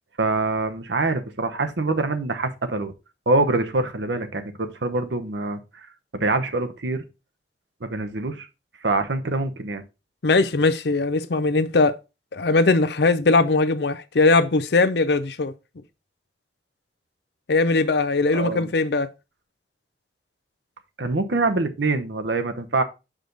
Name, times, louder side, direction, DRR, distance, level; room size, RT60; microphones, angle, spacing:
voice 1, 0.2-2.9 3.3-5.9 6.1-7.0 7.8-8.5 8.8-9.8 18.3-18.7 21.0-22.8, right 3 dB, 85° right, 0.9 m, -25 dB
voice 2, 10.2-12.0 12.3-15.5 17.5-19.1, left 3 dB, 65° left, 0.6 m, -20 dB
6.5 x 5.0 x 3.9 m
head